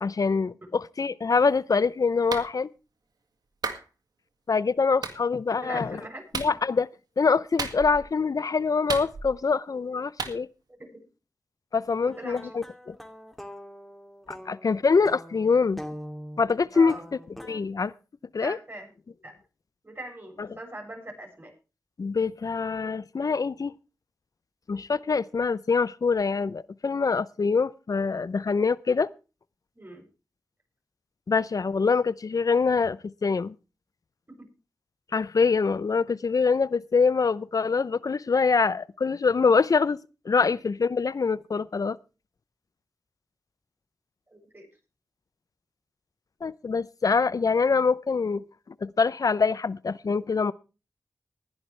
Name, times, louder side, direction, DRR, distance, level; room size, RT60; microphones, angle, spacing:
voice 1, 0.0-2.7 4.5-6.0 6.3-6.9 7.2-10.5 11.7-12.9 14.3-15.8 16.4-17.0 17.4-17.9 18.3-18.6 20.4-20.5 22.0-23.7 24.7-29.1 31.3-33.5 35.1-40.0 40.3-42.0 46.4-48.4 48.8-50.5, left 5 dB, 65° left, 0.6 m, -24 dB
Clapping, 2.3-2.5 3.6-3.8 5.0-5.2 6.3-6.6 7.6-8.1 8.9-9.5 10.2-10.4, right 4 dB, 85° right, 2.0 m, -32 dB
voice 2, 5.6-6.2 10.7-10.8 12.0-12.5 16.7-17.0 18.4-18.9 19.2-19.4 19.8-21.5 29.7-30.1 34.3-34.4 44.3-44.7, right 1 dB, 35° right, 7.5 m, -41 dB
sound 1, 12.1-17.6, equal, ahead, 2.6 m, -43 dB
20.0 x 11.5 x 3.3 m
cardioid pair, 45°, 7 cm